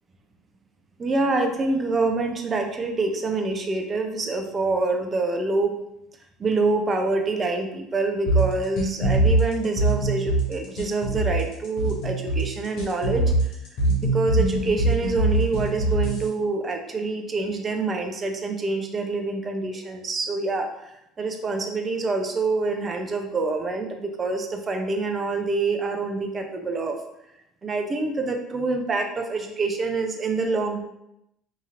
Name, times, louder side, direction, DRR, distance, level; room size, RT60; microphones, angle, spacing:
voice 1, 1.0-5.7 6.4-13.5 14.0-27.0 27.6-30.8, right 3 dB, 30° right, 4 dB, 0.5 m, -26 dB
sound 1, 8.3-16.3, right 2 dB, 65° left, 0.8 m, -23 dB
2.9 x 2.7 x 2.5 m, 0.82 s
hypercardioid pair, 75°, 0 cm